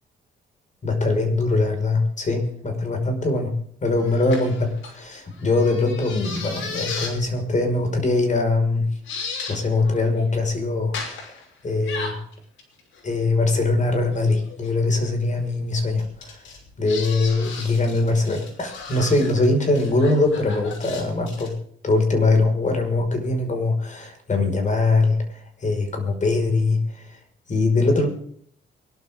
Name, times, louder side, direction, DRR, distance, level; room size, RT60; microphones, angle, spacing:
voice 1, 0.8-3.5 3.8-8.9 9.5-11.4 11.6-12.1 13.0-16.4 16.8-21.5 21.8-27.0 27.5-28.1, left 2 dB, 40° left, 4 dB, 5.6 m, -22 dB
sound 1, 4.0-7.2 7.8-8.0 8.5-8.6 9.0-9.6 9.8-10.3 10.9-11.4 11.8-13.3 14.4-14.7 16.0-21.5, left 5 dB, 75° left, 5.8 m, -35 dB
24.0 x 12.0 x 3.8 m, 0.62 s
cardioid pair, 90°, 20 cm